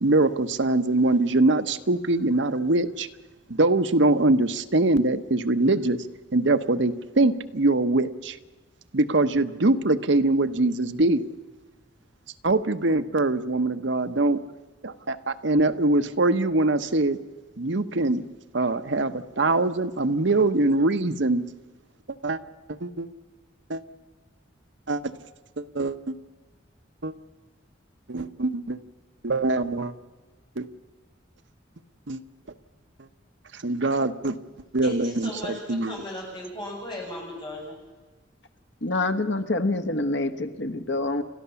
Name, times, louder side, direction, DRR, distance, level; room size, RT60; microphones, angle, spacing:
voice 1, 0.0-3.1 3.5-6.0 6.3-8.4 8.9-11.2 12.4-14.4 14.8-17.2 17.6-18.2 18.5-21.4 22.2-22.4 22.7-23.1 23.7-23.8 24.9-25.1 25.6-26.1 27.0-27.1 28.1-28.8 29.2-29.9 30.6-30.7 32.1-32.2 33.5-34.4 34.7-36.0, right 2 dB, 65° right, 10 dB, 1.0 m, -23 dB
voice 2, 34.8-37.8, left 1 dB, 25° left, -2 dB, 7.1 m, -37 dB
voice 3, 38.8-41.2, left 2 dB, 65° left, 9 dB, 1.3 m, -26 dB
30.0 x 13.0 x 7.0 m, 1.3 s
head